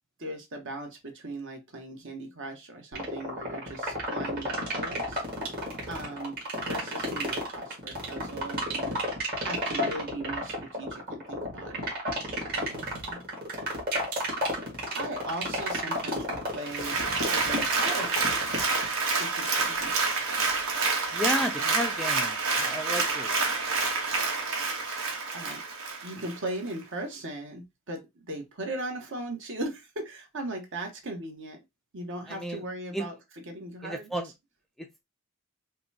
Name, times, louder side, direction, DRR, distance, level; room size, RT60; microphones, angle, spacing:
voice 1, 0.2-5.2 5.9-9.0 9.4-11.9 12.5-13.2 14.9-18.5 19.2-20.4 21.6-21.7 22.9-23.1 24.1-24.6 25.3-25.6 26.0-31.6 31.9-33.1 33.5-34.1, right 1 dB, 60° right, 1.1 m, -38 dB
sound 1, 2.9-18.9, right 1 dB, 45° right, 1.6 m, -31 dB
Applause, 16.6-26.4 26.8-26.9, right 4 dB, 85° right, 1.2 m, -28 dB
voice 2, 21.1-23.3 32.3-32.6 32.9-33.1 33.8-34.3 34.8-35.0, equal, ahead, 0.3 m, -33 dB
5.3 x 2.2 x 2.8 m
head